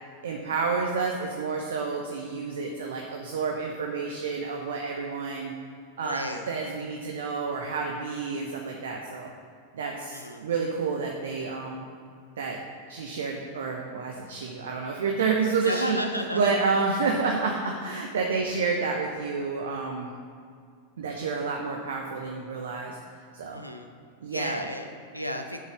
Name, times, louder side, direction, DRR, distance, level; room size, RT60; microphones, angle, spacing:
voice 1, 0.2-5.5 6.0-9.3 9.7-11.9 12.4-12.6 12.9-16.0 16.3-20.1 21.0-23.0 23.3-23.6 24.2-24.6, right 4 dB, 60° right, 1 dB, 0.9 m, -29 dB
voice 2, 6.0-6.4 10.1-10.5 15.6-16.6 18.3-18.4 23.5-23.9 24.3-25.6, equal, 90° left, 4 dB, 0.7 m, -33 dB
7.3 x 6.5 x 7.2 m, 2.3 s
figure-of-eight pair, 90°, 0 cm